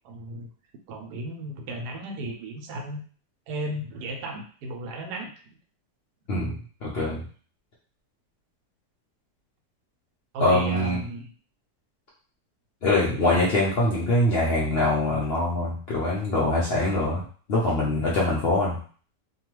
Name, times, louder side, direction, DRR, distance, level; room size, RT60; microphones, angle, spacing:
voice 1, 0.0-0.5 0.9-3.0 3.5-5.3 10.3-11.3, right 1 dB, 80° right, 3 dB, 1.1 m, -34 dB
voice 2, 6.8-7.2 10.4-11.0 12.8-17.2 17.5-18.8, left 2 dB, 70° left, -5 dB, 0.6 m, -23 dB
2.8 x 2.3 x 3.0 m, 0.43 s
omnidirectional pair, 1.8 m